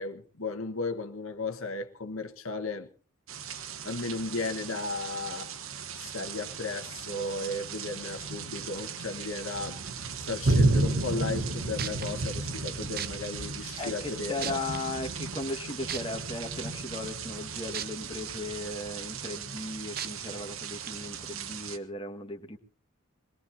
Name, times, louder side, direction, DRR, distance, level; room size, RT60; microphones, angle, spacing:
voice 1, 0.0-2.9 3.8-5.5 5.9-9.8 10.2-14.6, left 3 dB, 70° left, 1.4 m, -35 dB
sound 1, 3.3-21.8, right 3 dB, 65° right, 1.2 m, -34 dB
sound 2, 11.8-12.1 13.0-13.1 13.8-13.9 14.4-14.8 15.9-16.0 17.7-17.9 18.4-18.5 20.0-20.1 20.8-20.9, right 10 dB, 40° right, 0.8 m, -34 dB
voice 2, 13.8-22.6, left 2 dB, 25° left, 1.7 m, -37 dB
23.0 x 21.0 x 2.8 m
head